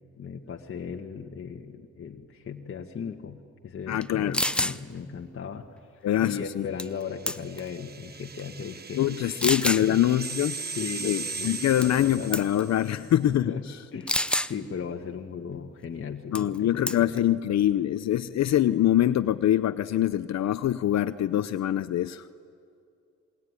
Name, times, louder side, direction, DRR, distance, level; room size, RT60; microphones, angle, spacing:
voice 1, 0.1-5.7 5.9-9.1 9.4-10.0 10.7-12.4 13.4-14.2 14.4-17.1, left 6 dB, 45° left, 2 dB, 1.7 m, -37 dB
voice 2, 3.9-4.4 6.0-6.7 9.0-10.6 11.0-13.5 16.3-22.2, left 12 dB, 60° left, 12 dB, 0.8 m, -24 dB
sound 1, 4.0-4.1 4.3-4.8 6.8-7.0 7.3-7.7 8.4-8.5 9.4-9.9 11.8-12.1 12.3-12.6 14.1-14.5 16.4-16.6 16.9-17.2, left 1 dB, 5° left, 0.8 m, -27 dB
sound 2, 7.1-13.0, right 4 dB, 30° right, 1.2 m, -38 dB
27.5 x 21.5 x 9.9 m, 2.4 s
cardioid pair, 90°, 30 cm